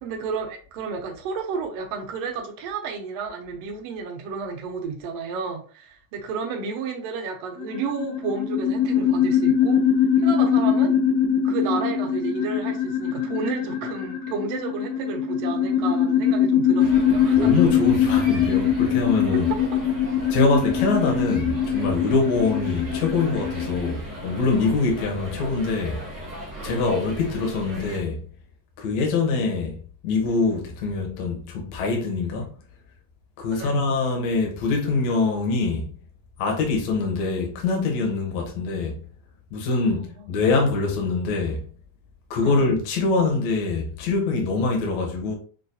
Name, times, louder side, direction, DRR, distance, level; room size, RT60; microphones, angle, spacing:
voice 1, 0.0-9.8 10.2-10.9 11.4-17.5 33.5-33.8 42.4-42.6, right 5 dB, 80° right, 1.4 m, -31 dB
sound 1, 7.6-23.9, left 8 dB, 85° left, 1.5 m, -22 dB
sound 2, 16.8-28.0, right 1 dB, 10° right, 0.7 m, -37 dB
voice 2, 17.4-19.5 20.3-26.0 26.6-28.2 28.8-32.5 33.4-35.9 36.4-39.0 39.5-41.7 42.3-45.4, left 3 dB, 65° left, 2.2 m, -24 dB
6.4 x 2.3 x 2.6 m
omnidirectional pair, 3.8 m